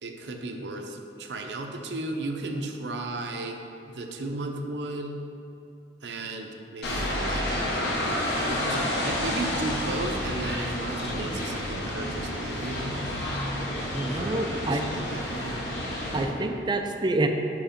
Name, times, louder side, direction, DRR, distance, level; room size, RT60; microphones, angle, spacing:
voice 1, 0.0-3.6 3.9-5.2 6.0-13.4 14.2-15.6, right 2 dB, 80° right, 4 dB, 0.6 m, -35 dB
sound 1, 6.8-16.2, left 1 dB, 85° left, 1.1 m, -30 dB
sound 2, 11.0-13.6 14.3-14.4, equal, 35° left, 1.3 m, -48 dB
voice 2, 13.9-14.8 16.1-17.3, right 2 dB, 25° right, 5 dB, 0.4 m, -27 dB
5.1 x 4.9 x 5.0 m, 2.7 s
head